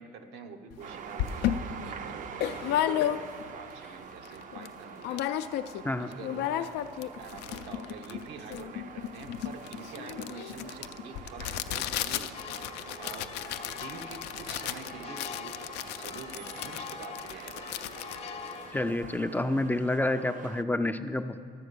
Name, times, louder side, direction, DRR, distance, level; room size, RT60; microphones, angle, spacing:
voice 1, 0.0-5.2 6.0-6.8 7.2-12.6 13.0-13.3 13.7-15.6 16.0-17.8 18.1-18.2, right 5 dB, 85° right, 5 dB, 1.0 m, -46 dB
sound 1, 0.7-0.8 1.2-3.6 4.0-4.1 4.2-4.7 5.0-5.8 6.1-19.2, left 11 dB, 85° left, 0.4 m, -34 dB
sound 2, 0.8-20.6, right 7 dB, 50° right, 0.5 m, -46 dB
sound 3, 12.3-18.9, left 6 dB, 35° left, 0.7 m, -44 dB
voice 2, 18.7-21.4, left 1 dB, 10° left, 8 dB, 0.4 m, -29 dB
12.0 x 7.2 x 6.8 m, 2.2 s
cardioid pair, 110°, 17 cm